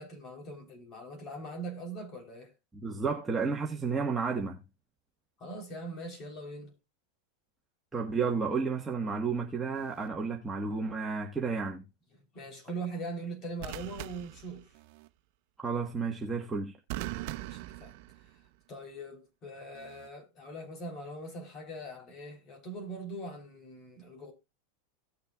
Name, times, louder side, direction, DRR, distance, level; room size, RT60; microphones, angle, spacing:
voice 1, 0.0-2.5 5.4-6.7 12.3-14.7 17.1-17.9 18.7-24.3, right 2 dB, 35° left, 3.4 m, -41 dB
voice 2, 2.7-4.6 7.9-11.8 15.6-16.8, right 5 dB, 10° right, 1.3 m, -32 dB
sound 1, 9.7-10.1 13.6-15.1 16.9-18.6 19.8-20.1, right 16 dB, 55° right, 0.8 m, -41 dB
17.5 x 6.7 x 2.3 m
supercardioid pair, 130°, 0 cm